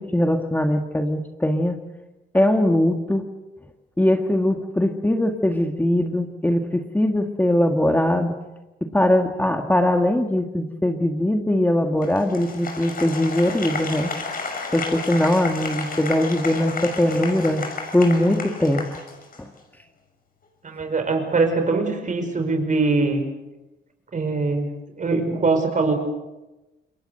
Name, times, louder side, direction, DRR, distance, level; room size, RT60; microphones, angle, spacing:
voice 1, 0.1-1.8 2.3-3.2 4.0-8.3 8.9-14.1 14.7-17.6 17.9-18.8 19.4-19.5, left 1 dB, 10° left, 4 dB, 1.9 m, -21 dB
Applause, 12.0-19.6, left 4 dB, 45° left, 6.1 m, -32 dB
voice 2, 20.6-23.2 24.1-24.7 25.0-25.9, right 3 dB, 40° right, 7 dB, 5.4 m, -22 dB
27.5 x 22.0 x 6.7 m, 1.0 s
cardioid pair, 90°, 20 cm